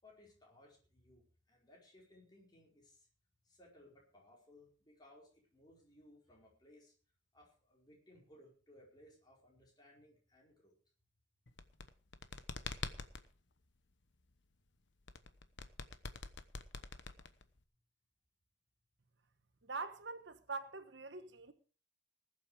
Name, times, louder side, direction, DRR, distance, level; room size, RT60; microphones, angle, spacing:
voice 1, 0.0-3.1 3.4-6.9 7.3-10.7, left 1 dB, 20° left, 4.9 m, -63 dB
sound 1, 11.5-13.3 15.1-17.6, left 4 dB, 70° left, 1.0 m, -45 dB
voice 2, 19.6-21.5, right 4 dB, 70° right, 1.2 m, -44 dB
19.5 x 8.0 x 5.0 m
head